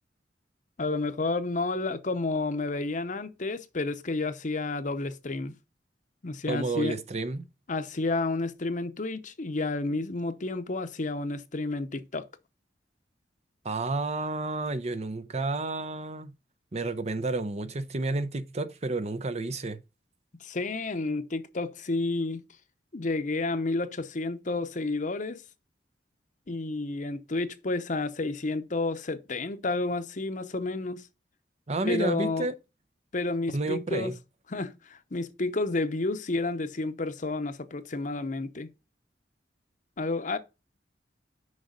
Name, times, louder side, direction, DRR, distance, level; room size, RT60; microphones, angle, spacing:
voice 1, 0.8-5.5 6.2-6.9 7.7-12.3 20.4-22.4 22.9-25.4 26.5-31.1 31.8-32.5 33.1-34.1 34.5-38.7 40.0-40.4, left 3 dB, 45° left, 0.8 m, -30 dB
voice 2, 6.5-7.4 13.6-16.3 16.7-19.8 31.7-32.5 33.5-34.1, right 3 dB, 40° right, 0.6 m, -31 dB
6.5 x 5.2 x 5.2 m
head